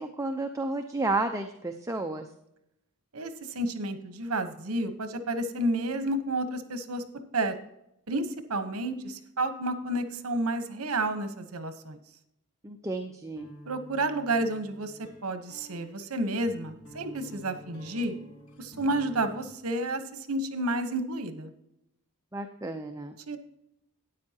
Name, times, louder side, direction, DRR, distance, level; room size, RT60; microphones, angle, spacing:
voice 1, 0.0-2.3 12.6-13.5 22.3-23.2, right 2 dB, 15° right, 5 dB, 0.6 m, -32 dB
voice 2, 3.1-7.0 7.3-7.5 8.1-12.0 13.6-18.1 18.6-21.5 23.3-23.4, right 1 dB, 80° right, 9 dB, 1.1 m, -31 dB
sound 1, 13.4-19.5, equal, 70° left, 2.5 m, -49 dB
13.0 x 9.8 x 2.9 m, 0.81 s
head